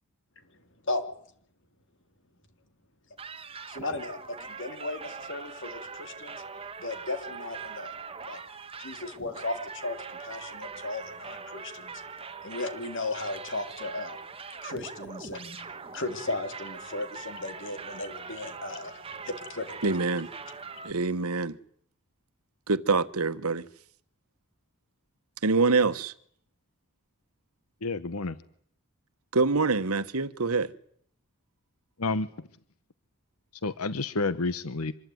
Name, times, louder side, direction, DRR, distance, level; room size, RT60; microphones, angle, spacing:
sound 1, 3.2-20.9, right 5 dB, 25° right, 1.4 m, -42 dB
voice 1, 3.7-6.4 6.8-7.9 8.3-8.4 8.8-12.0 12.4-14.2 14.6-15.6 15.9-20.0, left 2 dB, 60° left, 3.3 m, -36 dB
voice 2, 19.8-20.3 20.8-21.6 22.7-23.7 25.4-26.1 29.3-30.7, right 4 dB, 90° right, 1.3 m, -25 dB
voice 3, 27.8-28.4 32.0-32.3 33.6-34.9, left 3 dB, 85° left, 1.1 m, -29 dB
25.5 x 21.0 x 9.5 m
head